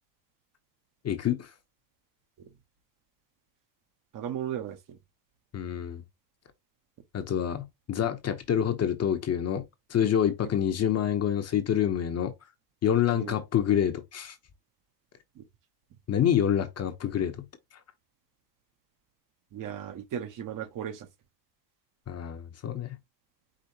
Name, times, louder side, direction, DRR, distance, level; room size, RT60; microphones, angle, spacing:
voice 1, 1.0-1.5 5.5-6.0 7.1-9.6 9.9-12.3 12.8-14.4 16.1-17.4 22.1-23.0, left 9 dB, 30° left, 0.9 m, -27 dB
voice 2, 4.1-5.0 13.1-13.4 15.4-15.5 19.5-21.1, right 9 dB, 40° right, 1.0 m, -36 dB
5.2 x 3.6 x 2.8 m
hypercardioid pair, 90°, 50 cm